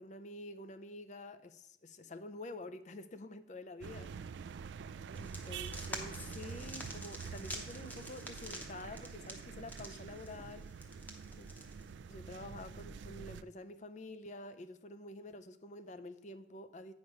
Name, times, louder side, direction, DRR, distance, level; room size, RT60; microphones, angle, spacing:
voice 1, 0.0-4.6 5.1-10.9 11.4-11.5 12.1-16.9, left 2 dB, 40° left, 10 dB, 0.5 m, -48 dB
sound 1, 3.8-13.4, right 6 dB, 70° right, 0.3 m, -46 dB
sound 2, 5.1-11.9, equal, 10° left, 0.9 m, -48 dB
9.4 x 5.2 x 5.3 m, 0.76 s
head